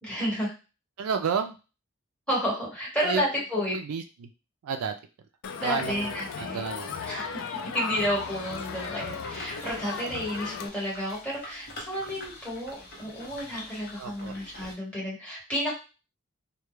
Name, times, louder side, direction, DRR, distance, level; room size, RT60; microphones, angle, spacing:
voice 1, 0.0-0.5 2.3-3.7 5.6-6.6 7.1-7.4 7.7-15.7, equal, 5° left, -7 dB, 1.3 m, -31 dB
voice 2, 1.0-1.6 3.0-3.2 3.6-4.3 4.6-4.9 5.6-6.9 14.0-14.3, right 6 dB, 85° right, 7 dB, 0.4 m, -31 dB
Crowd, 5.4-10.7, left 6 dB, 60° left, 0.3 m, -36 dB
sound 1, 7.9-14.7, left 1 dB, 45° left, 0.8 m, -45 dB
2.2 x 2.2 x 3.1 m, 0.31 s
head